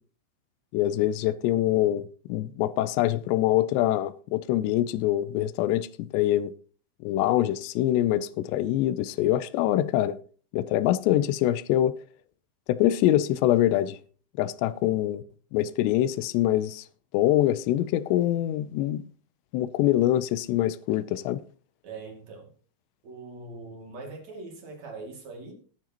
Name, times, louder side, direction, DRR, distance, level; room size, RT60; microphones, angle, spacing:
voice 1, 0.7-6.5 7.0-10.2 10.5-12.0 12.7-14.0 14.4-15.2 15.5-16.8 17.1-19.0 19.5-21.4, left 13 dB, 90° left, 2.4 m, -24 dB
voice 2, 21.8-22.5 23.0-25.5, right 3 dB, 45° right, 3.0 m, -42 dB
19.5 x 7.3 x 2.9 m
omnidirectional pair, 5.6 m